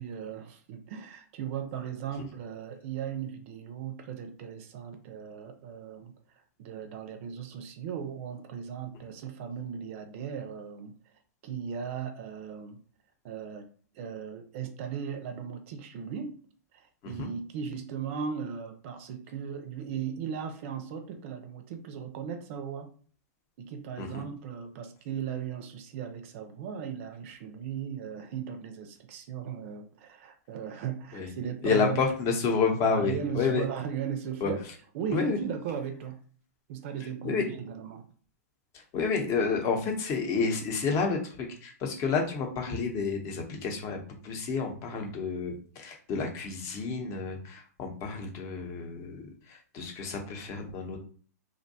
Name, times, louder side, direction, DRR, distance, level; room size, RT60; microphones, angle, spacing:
voice 1, 0.0-6.1 6.6-10.9 11.4-12.8 13.2-13.6 13.9-16.3 16.7-22.9 23.6-32.0 32.7-34.6 34.9-36.2 36.7-38.1, right 7 dB, 50° right, 6 dB, 0.5 m, -37 dB
voice 2, 31.6-33.7 34.4-34.5 35.1-35.4 37.2-37.4 38.7-51.0, left 5 dB, 35° left, 2 dB, 0.7 m, -30 dB
2.5 x 2.2 x 2.7 m, 0.43 s
hypercardioid pair, 120°, 9 cm